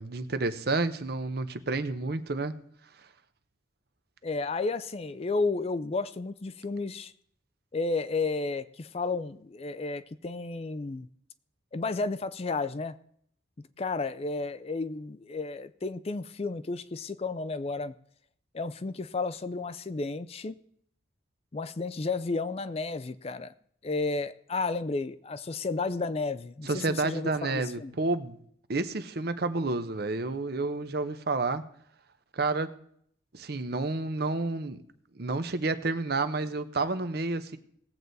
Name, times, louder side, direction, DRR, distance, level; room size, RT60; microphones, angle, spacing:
voice 1, 0.0-2.5 26.6-28.4 28.7-31.6 32.3-32.7 33.3-34.8 35.1-37.6, right 3 dB, 55° right, 11 dB, 0.8 m, -30 dB
voice 2, 4.2-7.1 7.7-11.1 11.7-13.0 13.8-17.9 18.5-20.6 21.5-23.5 23.8-27.9, left 3 dB, 30° left, 13 dB, 0.4 m, -32 dB
18.5 x 7.9 x 4.1 m, 0.66 s
head